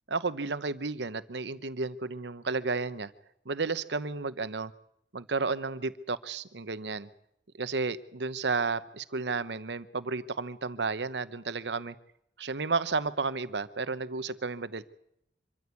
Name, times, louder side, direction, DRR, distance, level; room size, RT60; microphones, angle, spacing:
voice 1, 0.1-3.1 3.5-4.7 5.1-7.1 7.6-11.9 12.4-14.8, right 4 dB, 75° right, 14 dB, 0.9 m, -32 dB
25.0 x 14.0 x 8.3 m, 0.77 s
head